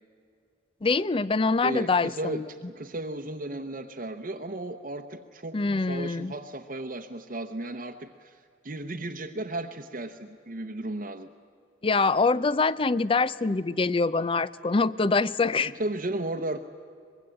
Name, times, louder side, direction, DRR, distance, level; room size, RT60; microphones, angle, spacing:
voice 1, 0.8-2.4 5.5-6.3 11.8-15.7, left 3 dB, 30° left, 18 dB, 0.5 m, -24 dB
voice 2, 1.6-11.3 15.6-16.6, right 1 dB, 45° right, 3 dB, 0.9 m, -35 dB
24.0 x 21.5 x 9.0 m, 2.3 s
head